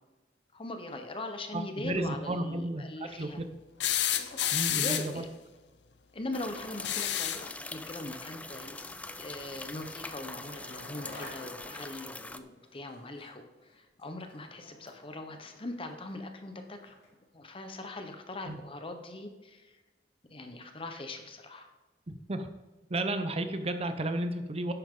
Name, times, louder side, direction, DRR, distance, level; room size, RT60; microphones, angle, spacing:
voice 1, 0.5-3.4 4.2-5.3 6.1-16.9 17.3-19.7 20.3-21.7, left 2 dB, 30° left, 6 dB, 1.0 m, -41 dB
voice 2, 1.5-3.5 4.5-5.2 18.5-18.6 22.1-22.5 22.9-24.7, right 1 dB, 35° right, 8 dB, 0.7 m, -33 dB
sound 1, 3.8-5.2 6.7-7.5 9.2-9.3 10.7-10.8, left 11 dB, 85° left, 0.7 m, -30 dB
sound 2, 6.3-12.4, left 2 dB, 10° left, 0.4 m, -43 dB
Skateboard, 8.9-17.3, left 1 dB, 70° left, 2.9 m, -53 dB
10.5 x 8.5 x 3.8 m, 1.2 s
head